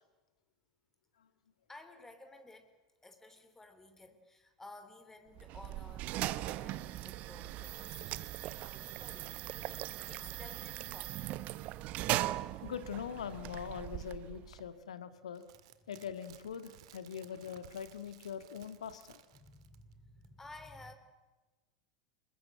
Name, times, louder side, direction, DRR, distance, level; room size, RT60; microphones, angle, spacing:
voice 1, 1.7-2.7 3.0-9.3 9.7-11.4 12.5-12.6 19.3-21.0, left 2 dB, 10° left, 7 dB, 3.3 m, -55 dB
sound 1, 5.4-14.7, right 16 dB, 45° right, 0.9 m, -39 dB
voice 2, 12.6-15.4 15.9-19.2, left 8 dB, 70° left, 11 dB, 1.9 m, -42 dB
sound 2, 15.3-19.9 20.2-20.3, right 12 dB, 60° right, 1.9 m, -59 dB
27.0 x 21.0 x 7.9 m, 1.2 s
figure-of-eight pair, 85°, 4 cm